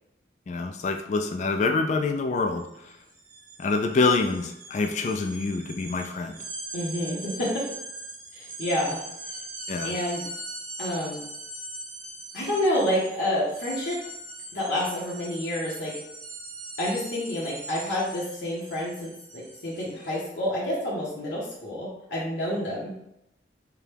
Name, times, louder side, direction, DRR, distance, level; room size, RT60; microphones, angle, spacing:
voice 1, 0.5-2.7 3.6-6.3 9.7-9.9, left 3 dB, 40° left, 5 dB, 0.3 m, -26 dB
sound 1, 2.5-2.7 3.0-20.2, right 2 dB, 60° right, 1.3 m, -41 dB
voice 2, 6.7-7.6 8.3-9.0 9.8-10.2 10.8-11.2 12.3-14.0 14.5-16.0 16.8-23.0, left 1 dB, 85° left, -7 dB, 1.0 m, -28 dB
4.8 x 2.2 x 3.4 m, 0.82 s
head